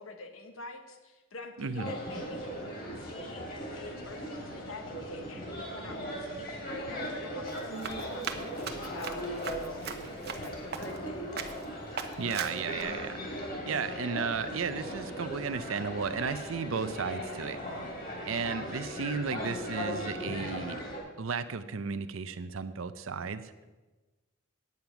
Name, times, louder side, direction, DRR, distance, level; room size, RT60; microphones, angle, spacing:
voice 1, 0.0-2.6 2.9-11.4, left 3 dB, 85° left, 5 dB, 1.2 m, -47 dB
voice 2, 1.6-1.9 12.2-13.2 13.7-17.9 18.3-20.8 21.2-23.5, right 5 dB, 80° right, 11 dB, 0.6 m, -34 dB
sound 1, 1.8-21.0, equal, 50° left, 3.0 m, -38 dB
Run, 7.5-11.1 11.4-11.6 12.0-12.8, right 6 dB, 50° right, 0.9 m, -39 dB
9.5 x 8.7 x 5.9 m, 1.2 s
head